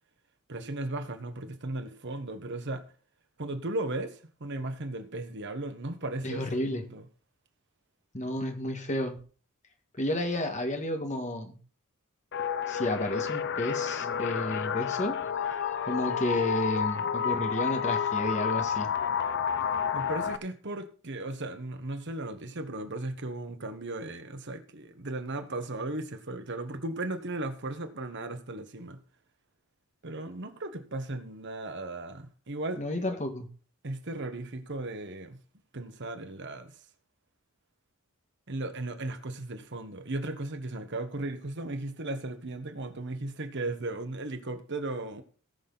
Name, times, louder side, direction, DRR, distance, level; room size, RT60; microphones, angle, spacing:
voice 1, 0.5-2.8 3.4-7.0 19.9-29.0 30.0-32.8 33.8-35.4 35.7-36.7 38.5-45.2, right 2 dB, 55° right, 1.3 m, -36 dB
voice 2, 6.2-6.8 8.1-9.2 10.0-11.6 12.7-18.9 32.8-33.5, left 1 dB, 35° left, 1.7 m, -31 dB
sound 1, 12.3-20.4, left 7 dB, 55° left, 0.7 m, -30 dB
18.0 x 6.4 x 4.0 m
head